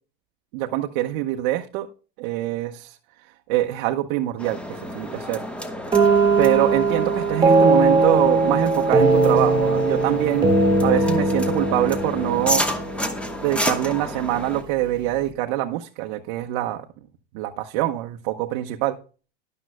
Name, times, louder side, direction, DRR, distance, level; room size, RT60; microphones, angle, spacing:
voice 1, 0.5-1.9 2.2-3.0 3.5-5.4 6.4-10.5 10.8-12.7 13.4-16.8 17.3-19.0, right 14 dB, 55° right, 1.0 m, -24 dB
sound 1, 4.4-14.6, equal, 5° left, 1.3 m, -31 dB
sound 2, 5.9-13.6, right 3 dB, 15° right, 1.8 m, -19 dB
12.5 x 11.0 x 2.2 m
supercardioid pair, 145°, 31 cm